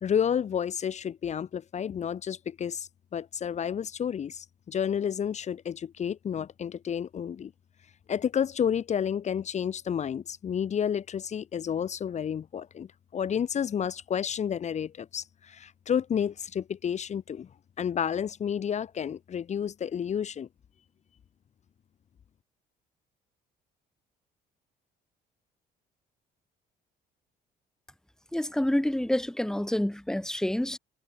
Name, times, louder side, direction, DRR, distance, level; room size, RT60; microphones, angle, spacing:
voice 1, 0.0-7.5 8.1-17.5 17.8-20.5, left 8 dB, 40° left, 1.7 m, -30 dB
voice 2, 28.3-30.8, left 1 dB, 5° left, 2.1 m, -28 dB
cardioid pair, 110°, 17 cm